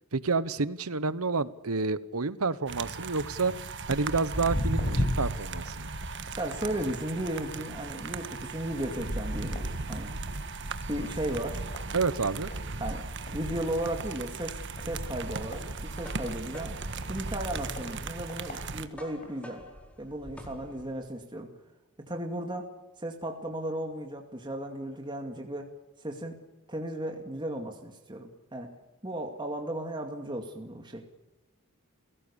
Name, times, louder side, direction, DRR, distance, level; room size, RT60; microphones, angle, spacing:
voice 1, 0.1-3.5 3.9-5.9 11.9-12.5, right 4 dB, 85° right, 16 dB, 1.1 m, -29 dB
sound 1, 2.7-18.9, right 3 dB, 55° right, 1.4 m, -37 dB
Walk footsteps, 3.8-10.5 10.8-11.2 11.7-11.8 12.5-12.6 13.0-13.1 13.3-13.4 13.9-14.1 14.8-16.4 16.9-17.0 17.8-17.9 18.3-18.5 19.2-19.3, equal, 35° left, 6.8 m, -34 dB
voice 2, 6.4-10.1 10.9-11.6 12.8-13.1 13.3-16.8 17.1-19.7 20.0-21.5 22.0-22.7 23.0-25.7 26.0-26.4 26.7-28.7 29.0-31.1, right 1 dB, 20° right, 3 dB, 2.3 m, -35 dB
sound 2, 16.0-21.1, equal, 5° left, 4.2 m, -48 dB
30.0 x 17.5 x 7.1 m, 1.0 s
head